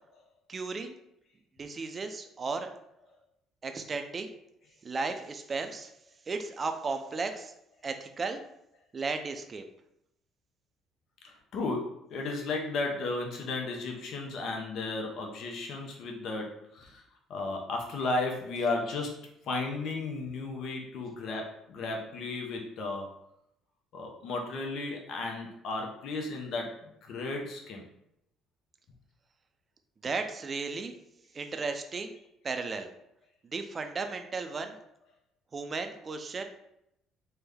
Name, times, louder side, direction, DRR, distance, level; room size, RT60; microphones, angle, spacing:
voice 1, 0.5-1.0 1.6-2.7 3.6-4.3 4.8-5.9 6.3-7.5 7.8-8.4 8.9-9.6 30.0-31.0 31.3-32.2 32.4-32.9 33.5-34.8 35.5-36.4, right 4 dB, 40° right, 6 dB, 0.4 m, -34 dB
voice 2, 11.2-17.0 17.3-23.1 23.9-26.7 27.1-27.8, left 3 dB, 65° left, 1 dB, 0.6 m, -34 dB
3.3 x 2.1 x 3.4 m, 0.79 s
hypercardioid pair, 60°, 0 cm